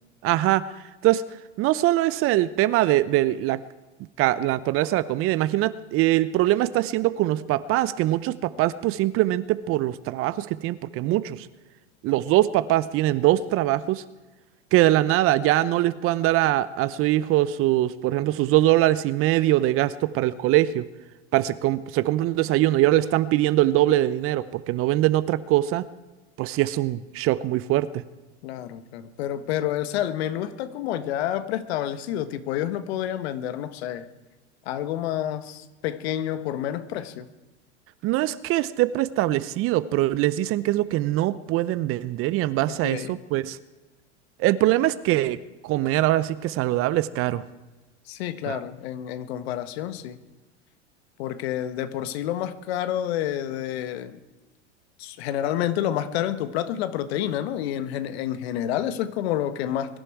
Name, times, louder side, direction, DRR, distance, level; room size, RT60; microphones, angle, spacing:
voice 1, 0.2-0.6 1.0-1.3 1.6-3.6 4.2-11.5 12.0-14.0 14.7-20.8 21.3-25.8 26.4-27.9 38.0-43.6 44.4-45.4 45.6-47.4 48.5-48.6, right 15 dB, 40° right, 17 dB, 0.8 m, -22 dB
voice 2, 28.4-34.1 34.6-37.3 42.8-43.2 48.1-50.2 51.2-54.2 55.0-60.0, left 11 dB, 60° left, 12 dB, 1.5 m, -29 dB
23.0 x 11.0 x 4.6 m, 1.2 s
hypercardioid pair, 110°, 35 cm